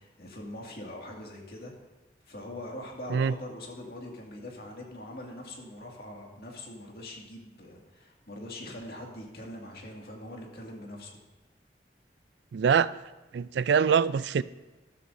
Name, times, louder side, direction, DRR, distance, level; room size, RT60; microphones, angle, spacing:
voice 1, 0.0-1.7 2.2-11.2, left 1 dB, 60° left, -1 dB, 2.2 m, -42 dB
voice 2, 12.5-12.9 13.3-14.4, right 6 dB, 80° right, 18 dB, 0.3 m, -24 dB
13.5 x 13.0 x 2.7 m, 1.2 s
head